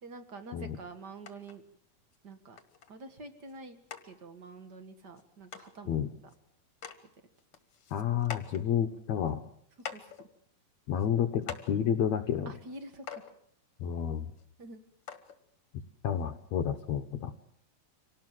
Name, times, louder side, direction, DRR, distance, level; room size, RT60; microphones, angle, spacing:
voice 1, 0.0-1.6 2.2-2.6 2.9-6.0 9.9-10.3 12.4-13.2 14.6-14.8, right 3 dB, 45° right, 9 dB, 1.4 m, -47 dB
sound 1, 1.3-1.6 2.1-2.2 2.6-2.9 3.5-3.6 3.9-4.0 5.2-5.3 5.5-5.7 6.3-6.4 6.7-7.0 7.4-8.6 9.3-9.4 9.8-10.3 10.9-11.1 11.4-11.7 12.7-12.8 13.1-13.3 14.4-14.5 15.1-15.4 16.2-16.3, left 8 dB, 45° left, 2.0 m, -43 dB
voice 2, 7.9-9.4 10.9-12.5 13.8-14.3 16.0-17.3, left 9 dB, 65° left, 7 dB, 2.0 m, -30 dB
26.5 x 18.5 x 7.7 m, 0.70 s
omnidirectional pair, 4.4 m